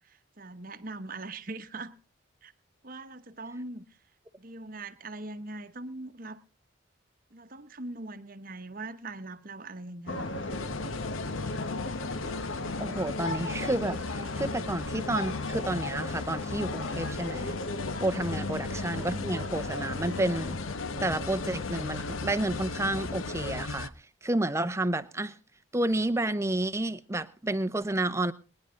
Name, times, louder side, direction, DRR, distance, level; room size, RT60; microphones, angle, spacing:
voice 1, 0.0-2.0 2.4-2.5 2.8-3.9 4.4-6.4 7.3-10.3 10.6-10.7, right 2 dB, 45° right, 0.9 m, -41 dB
sound 1, 10.1-23.7, left 2 dB, 70° left, 1.2 m, -36 dB
sound 2, 10.5-23.9, left 4 dB, 90° left, 0.7 m, -38 dB
voice 2, 12.8-17.6 18.0-20.6 21.0-23.9 24.2-25.4 25.7-28.3, right 1 dB, 15° right, 0.6 m, -30 dB
21.5 x 10.5 x 3.7 m
head